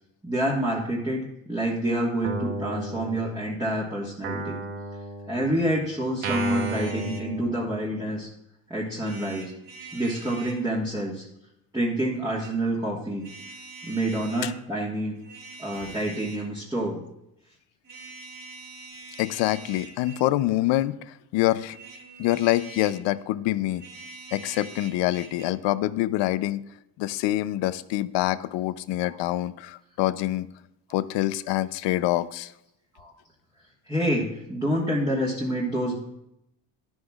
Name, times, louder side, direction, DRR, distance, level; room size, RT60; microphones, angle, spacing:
voice 1, 0.2-4.6 5.3-8.3 8.7-9.5 9.9-11.2 11.7-13.3 13.8-15.2 15.6-17.0 33.9-36.0, right 1 dB, 10° right, -5 dB, 1.5 m, -27 dB
Guitar, 2.2-3.7 4.2-8.1, right 3 dB, 90° right, 1.4 m, -34 dB
sound 1, 6.2-7.3 9.0-10.6 12.1-12.5 13.2-14.6 15.1-16.5 17.8-20.3 21.6-23.0 23.7-25.4, right 3 dB, 55° right, 3.4 m, -44 dB
voice 2, 19.2-21.8 22.2-23.8 24.3-26.6 27.0-30.5 30.9-32.5, left 15 dB, 85° left, 16 dB, 0.6 m, -26 dB
12.0 x 11.5 x 2.4 m, 0.84 s
cardioid pair, 130°, 42 cm